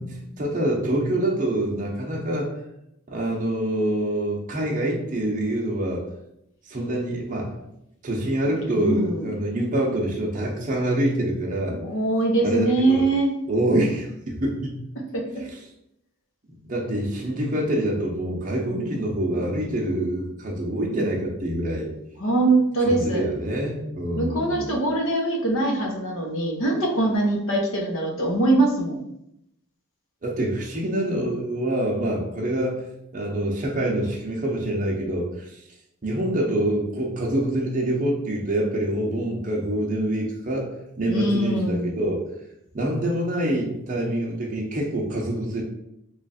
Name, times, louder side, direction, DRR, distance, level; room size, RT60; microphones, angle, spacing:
voice 1, 0.0-2.5 3.1-6.0 6.7-7.5 8.0-11.8 12.4-13.0 13.5-14.8 15.4-15.6 16.7-21.9 22.8-24.8 30.2-32.8 33.1-35.6 36.0-42.2 42.7-45.6, right 1 dB, 35° right, -2 dB, 0.7 m, -26 dB
voice 2, 8.6-9.3 11.7-13.3 22.2-23.2 24.2-29.0 41.1-42.0, right 2 dB, 60° left, 0 dB, 0.8 m, -23 dB
3.1 x 2.4 x 4.0 m, 0.80 s
head